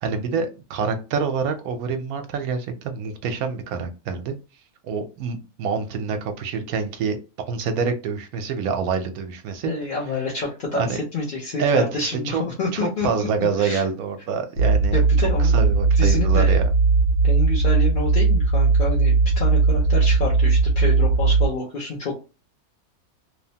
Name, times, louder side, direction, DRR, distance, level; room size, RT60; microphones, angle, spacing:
voice 1, 0.0-4.3 4.8-7.2 7.5-9.7 10.7-11.0 11.6-12.4 12.7-16.6, right 5 dB, 80° right, 6 dB, 1.1 m, -26 dB
voice 2, 9.6-13.9 14.9-15.5 16.0-16.5 17.2-22.3, left 3 dB, 45° left, -4 dB, 0.7 m, -28 dB
sound 1, 14.6-21.5, right 4 dB, 85° left, 1.2 m, -18 dB
3.1 x 2.1 x 2.7 m, 0.30 s
omnidirectional pair, 1.5 m